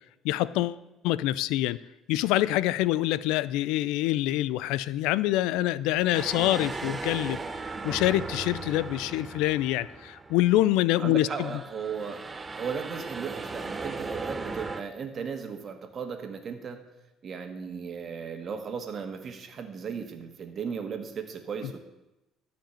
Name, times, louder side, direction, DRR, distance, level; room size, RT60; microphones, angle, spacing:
voice 1, 0.2-1.8 2.1-7.4 7.8-11.5, left 15 dB, 85° left, 18 dB, 0.4 m, -26 dB
sound 1, 6.1-10.7 11.1-14.8, right 4 dB, 20° right, 0.9 m, -37 dB
voice 2, 11.0-12.3 12.5-16.8 17.2-21.8, right 6 dB, 45° right, 6 dB, 1.7 m, -36 dB
13.0 x 5.1 x 8.9 m, 0.98 s
cardioid pair, 105°, 0 cm